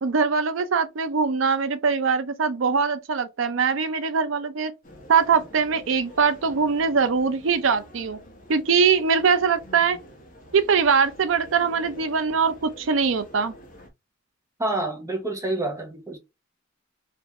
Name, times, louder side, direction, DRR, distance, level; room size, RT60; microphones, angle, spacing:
voice 1, 0.0-4.7 5.1-8.2 8.5-10.0 10.5-13.5, right 5 dB, 75° right, 0.5 m, -22 dB
sound 1, 4.8-13.9, left 1 dB, 45° left, 1.0 m, -47 dB
voice 2, 14.6-16.2, right 2 dB, 15° right, 0.9 m, -28 dB
3.4 x 2.6 x 3.0 m
head